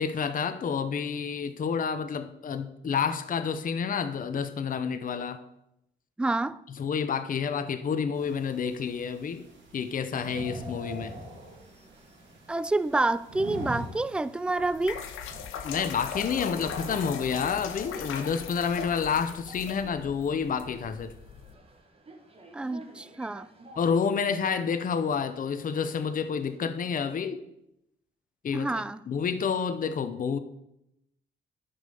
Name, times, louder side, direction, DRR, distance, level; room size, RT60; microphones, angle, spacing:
voice 1, 0.0-5.4 6.8-9.5 9.7-11.1 15.6-21.1 23.8-27.4 28.4-28.7 29.1-30.4, left 6 dB, 45° left, 0.8 m, -29 dB
voice 2, 6.2-6.6 12.5-15.1 22.5-23.5 28.5-29.0, right 2 dB, 5° right, 0.3 m, -28 dB
sound 1, 8.1-15.4, right 1 dB, 75° right, 3.0 m, -43 dB
sound 2, 10.5-27.1, right 1 dB, 30° right, 2.0 m, -53 dB
sound 3, 14.6-21.5, left 7 dB, 85° left, 1.2 m, -39 dB
10.0 x 5.4 x 6.8 m
cardioid pair, 90°, 20 cm